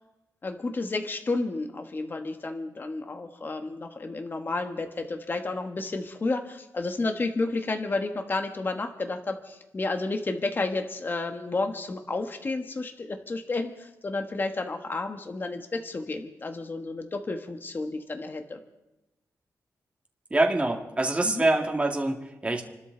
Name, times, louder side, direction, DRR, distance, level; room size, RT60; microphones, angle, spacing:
voice 1, 0.4-18.6 21.2-21.4, left 3 dB, 35° left, 5 dB, 1.4 m, -31 dB
voice 2, 20.3-22.6, right 2 dB, 20° right, 2 dB, 2.0 m, -25 dB
29.0 x 13.0 x 3.9 m, 0.96 s
wide cardioid pair, 105°, 6 cm